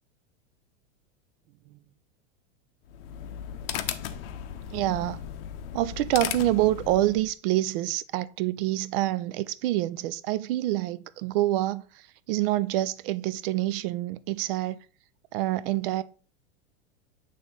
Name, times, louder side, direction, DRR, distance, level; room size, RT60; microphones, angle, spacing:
sound 1, 2.9-7.3, left 10 dB, 60° left, 0.7 m, -36 dB
voice 1, 4.5-5.2 5.7-14.8 15.3-16.0, right 15 dB, 55° right, 0.4 m, -27 dB
7.1 x 3.3 x 3.9 m
hypercardioid pair, 120°, 33 cm